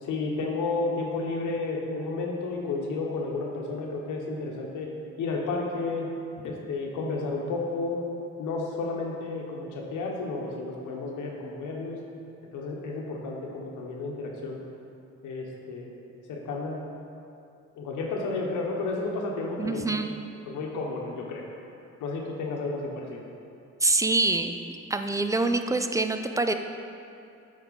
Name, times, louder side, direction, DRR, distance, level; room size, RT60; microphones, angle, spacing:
voice 1, 0.0-4.9 5.2-6.1 6.4-8.0 8.4-12.0 12.5-14.6 15.2-15.9 16.3-16.8 17.8-20.0 20.5-21.4 22.0-23.2, left 3 dB, 80° left, -1 dB, 1.1 m, -32 dB
voice 2, 19.6-20.2 23.8-24.6 24.9-26.5, right 2 dB, 10° right, 7 dB, 0.3 m, -25 dB
7.5 x 4.8 x 4.1 m, 2.7 s
cardioid pair, 90°, 30 cm